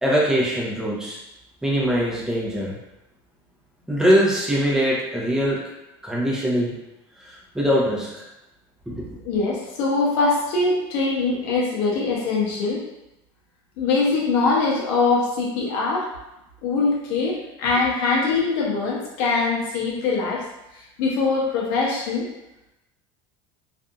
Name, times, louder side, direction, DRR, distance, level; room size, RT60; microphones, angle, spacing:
voice 1, 0.0-1.2 1.6-2.8 3.9-5.6 6.0-6.7 7.2-8.3 8.9-9.1, equal, 5° right, -6 dB, 0.7 m, -22 dB
voice 2, 9.2-12.8 13.8-16.1 16.6-20.4 20.7-22.3, left 3 dB, 75° left, -4 dB, 0.7 m, -22 dB
2.6 x 2.5 x 2.3 m, 0.93 s
supercardioid pair, 130°, 13 cm